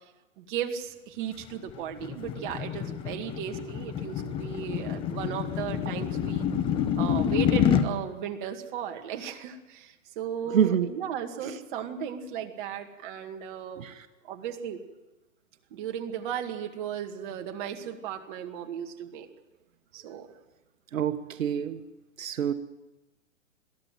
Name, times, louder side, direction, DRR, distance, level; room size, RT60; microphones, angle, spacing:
voice 1, 0.4-6.5 7.0-13.8 14.2-14.8 15.7-19.3 19.9-20.3, right 9 dB, 40° right, 4 dB, 2.2 m, -36 dB
sound 1, 1.4-7.9, left 9 dB, 15° left, 0.8 m, -28 dB
voice 2, 10.5-10.9 11.4-11.6 13.8-14.1 20.9-21.8 22.2-22.5, right 8 dB, 85° right, 9 dB, 1.2 m, -27 dB
21.5 x 14.0 x 9.1 m, 1.1 s
hypercardioid pair, 150°, 39 cm